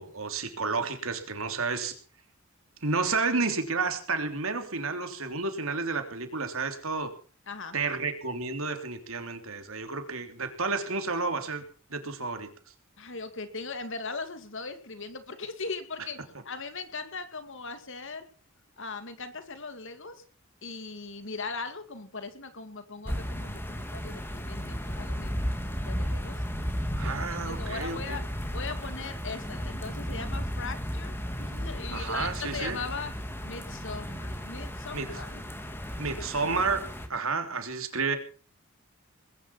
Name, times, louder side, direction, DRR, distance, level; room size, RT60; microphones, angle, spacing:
voice 1, 0.0-2.0 2.8-7.1 7.7-11.6 11.9-12.5 27.0-28.2 31.9-32.8 34.9-35.1 36.0-36.8 37.1-38.2, right 4 dB, 70° right, 6 dB, 3.2 m, -31 dB
voice 2, 13.0-16.2 16.4-18.3 18.8-20.2 20.6-26.4 27.0-27.1 27.5-28.2 28.5-33.1 33.4-35.4, left 4 dB, 60° left, 9 dB, 2.4 m, -39 dB
sound 1, 23.0-37.1, equal, 10° left, 2.4 m, -34 dB
21.0 x 10.5 x 6.0 m, 0.40 s
head